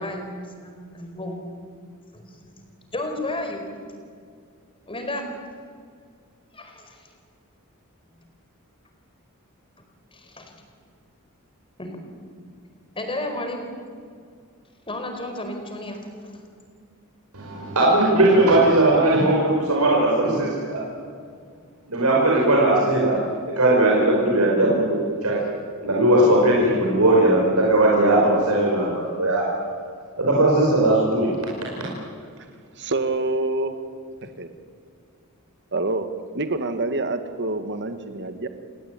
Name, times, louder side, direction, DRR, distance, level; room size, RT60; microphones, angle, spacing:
voice 1, 0.0-1.4 2.1-2.5 2.9-3.6 4.9-5.2 6.5-7.1 10.1-10.5 11.8-12.0 12.9-13.7 14.9-16.4, left 1 dB, 25° left, 5 dB, 4.6 m, -32 dB
voice 2, 17.3-20.8 21.9-23.2 23.6-25.4 25.8-29.5 30.2-31.5 31.8-31.9, right 1 dB, 80° right, -3 dB, 5.4 m, -19 dB
voice 3, 32.8-33.8 34.4-34.5 35.7-36.1 36.3-38.5, right 2 dB, 55° right, 8 dB, 1.9 m, -26 dB
29.5 x 18.5 x 9.3 m, 2.2 s
head